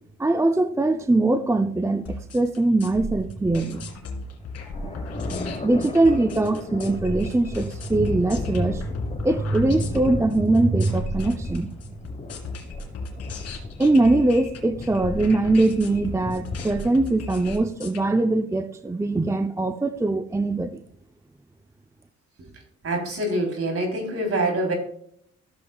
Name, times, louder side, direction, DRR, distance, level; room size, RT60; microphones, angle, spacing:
voice 1, 0.2-3.9 4.8-5.3 5.6-8.9 9.2-11.7 13.8-20.8, right 2 dB, 10° right, 8 dB, 0.5 m, -22 dB
sound 1, 2.1-18.0, left 2 dB, 55° left, 2.3 m, -36 dB
sound 2, 3.8-16.9, left 3 dB, 25° left, 1.2 m, -36 dB
voice 2, 22.8-24.7, right 1 dB, 50° right, 2 dB, 3.5 m, -25 dB
14.5 x 7.5 x 2.3 m, 0.66 s
cardioid pair, 90°, 30 cm